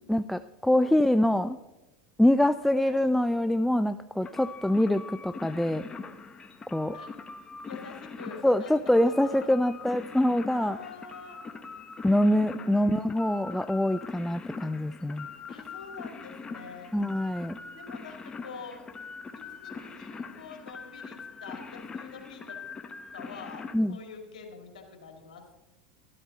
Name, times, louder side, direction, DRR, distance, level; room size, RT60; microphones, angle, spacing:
voice 1, 0.1-1.6 2.2-5.8 6.7-7.0 8.4-10.8 12.0-15.3 16.9-17.6 23.7-24.0, left 1 dB, 5° left, 11 dB, 0.3 m, -25 dB
sound 1, 4.2-23.7, left 4 dB, 20° left, 1.1 m, -42 dB
voice 2, 7.6-9.5 10.5-11.4 15.5-17.0 17.6-18.9 19.4-22.6 23.1-25.5, left 5 dB, 85° left, 3 dB, 2.0 m, -46 dB
13.0 x 12.0 x 4.1 m, 1.1 s
hypercardioid pair, 100°, 4 cm